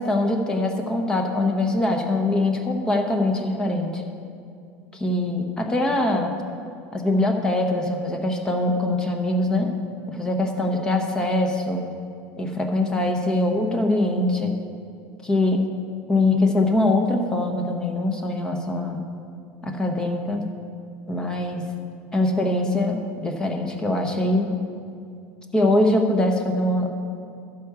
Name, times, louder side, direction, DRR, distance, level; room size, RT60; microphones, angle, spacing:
voice 1, 0.0-4.0 4.9-6.3 6.9-9.7 10.1-11.9 12.4-14.6 15.2-15.6 16.1-19.0 19.6-20.5 21.1-21.6 22.1-24.5 25.5-27.0, left 2 dB, 10° left, 3 dB, 0.9 m, -23 dB
12.5 x 4.7 x 6.6 m, 2.4 s
cardioid pair, 160°, 7 cm